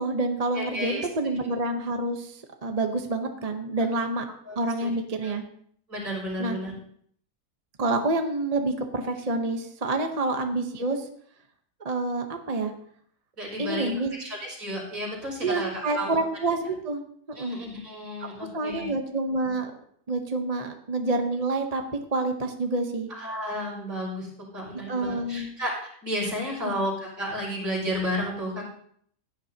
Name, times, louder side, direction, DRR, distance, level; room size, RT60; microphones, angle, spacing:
voice 1, 0.0-4.2 4.6-5.4 6.4-6.6 7.8-11.1 11.8-12.7 13.6-14.1 15.4-17.0 17.3-17.6 18.5-19.7 20.1-21.8 22.1-23.1 24.9-25.5 26.6-26.7, right 2 dB, 30° right, 5 dB, 0.8 m, -28 dB
voice 2, 0.5-1.1 4.5-4.9 5.2-5.3 5.9-6.7 13.4-13.9 14.2-16.2 17.4-18.9 23.1-28.6, equal, 55° right, -4 dB, 5.4 m, -32 dB
16.0 x 10.0 x 2.8 m, 0.64 s
omnidirectional pair, 1.7 m